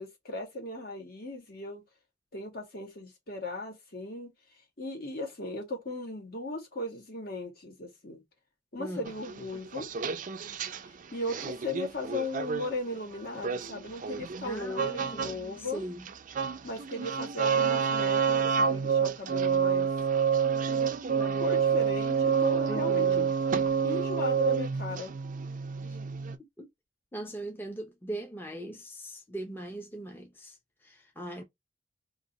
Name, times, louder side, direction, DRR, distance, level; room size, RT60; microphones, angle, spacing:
voice 1, 0.0-1.8 2.3-4.3 4.8-8.2 8.7-9.9 10.9-15.8 16.6-19.9 21.1-23.2 23.8-25.1, left 2 dB, 55° left, 1.4 m, -37 dB
voice 2, 8.8-9.1 14.4-16.1 22.7-23.3 26.6-26.7 27.1-30.6 30.8-31.4, right 1 dB, 10° left, 0.7 m, -40 dB
sound 1, 9.1-10.8 11.3-12.7 13.4-15.4 15.6-26.4, right 6 dB, 45° right, 0.4 m, -28 dB
2.7 x 2.6 x 3.9 m
head